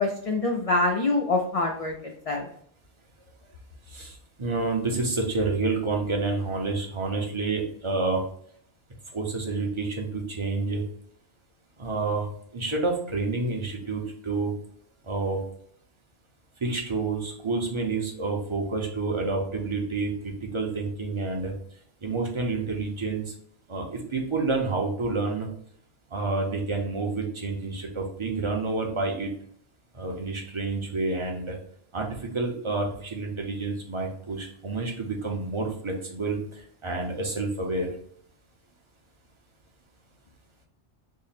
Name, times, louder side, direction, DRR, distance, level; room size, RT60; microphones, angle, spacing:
voice 1, 0.0-2.4, left 2 dB, 60° left, 1 dB, 0.3 m, -25 dB
voice 2, 3.9-8.2 9.1-10.8 11.8-12.3 12.5-14.5 15.1-15.4 16.6-21.5 22.0-23.3 23.7-25.5 26.1-29.3 29.9-31.6 31.9-32.1 32.3-37.9, right 3 dB, 30° right, 0 dB, 0.7 m, -29 dB
3.6 x 2.1 x 4.0 m, 0.66 s
omnidirectional pair, 1.2 m